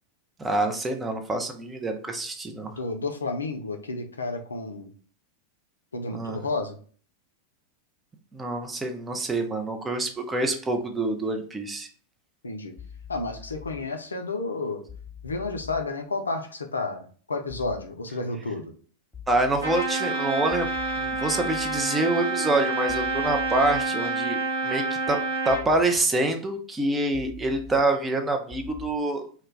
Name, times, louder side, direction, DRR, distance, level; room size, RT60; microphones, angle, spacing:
voice 1, 0.4-2.7 6.1-6.4 8.3-11.9 19.3-20.7 21.0-24.4 24.6-25.2 25.4-29.2, right 2 dB, 15° right, 4 dB, 0.4 m, -26 dB
voice 2, 2.7-4.9 5.9-6.8 12.4-12.7 13.1-14.8 15.2-18.7, left 3 dB, 75° left, 5 dB, 0.4 m, -31 dB
sound 1, 12.8-13.8 14.9-15.8 17.5-17.8 19.1-19.8 20.5-21.8 22.9-23.8 25.5-25.8 27.1-27.8 28.5-28.9, left 8 dB, 10° left, 1.0 m, -43 dB
Trumpet, 19.6-25.7, right 3 dB, 80° right, 0.7 m, -28 dB
2.2 x 2.2 x 3.2 m, 0.43 s
figure-of-eight pair, 90°, 0 cm